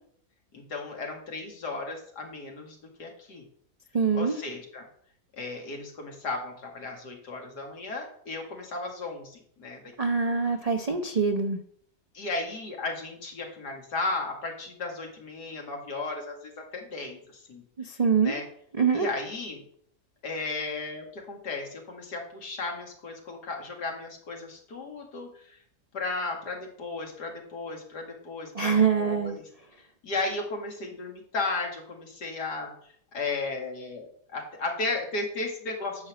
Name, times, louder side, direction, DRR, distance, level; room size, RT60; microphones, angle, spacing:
voice 1, 0.5-3.4 4.1-4.9 5.3-9.8 12.1-17.6 18.2-18.4 18.9-19.6 20.2-25.6 25.9-28.7 29.0-29.4 30.0-32.7 33.1-36.1, left 3 dB, 85° left, 1 dB, 2.5 m, -35 dB
voice 2, 3.9-4.4 10.0-11.6 17.8-18.3 18.8-19.1 28.5-29.4, right 5 dB, 55° right, 5 dB, 0.4 m, -24 dB
9.9 x 4.2 x 7.3 m, 0.62 s
omnidirectional pair, 1.7 m